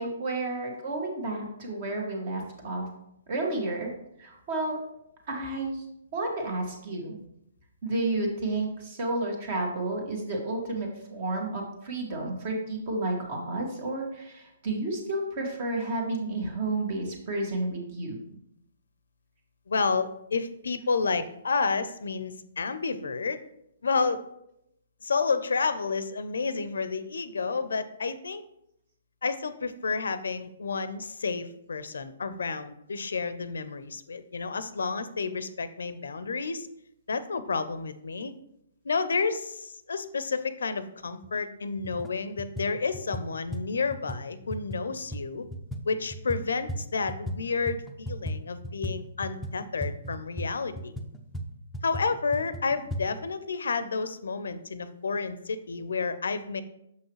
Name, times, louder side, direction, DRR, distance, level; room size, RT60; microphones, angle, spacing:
voice 1, 0.0-2.9 3.3-3.9 4.2-4.8 5.3-5.8 6.1-7.1 7.8-18.2, right 2 dB, 45° right, 1 dB, 1.7 m, -31 dB
voice 2, 19.7-23.4 23.8-24.2 25.0-28.4 29.2-36.7 37.1-38.3 38.8-45.5 45.9-50.9 51.8-56.6, left 4 dB, 85° left, 13 dB, 0.5 m, -30 dB
sound 1, 41.2-41.3 41.8-42.1 42.4-47.4 47.7-53.0, equal, 5° left, 0.5 m, -36 dB
6.5 x 5.5 x 3.1 m, 0.79 s
hypercardioid pair, 145°, 0 cm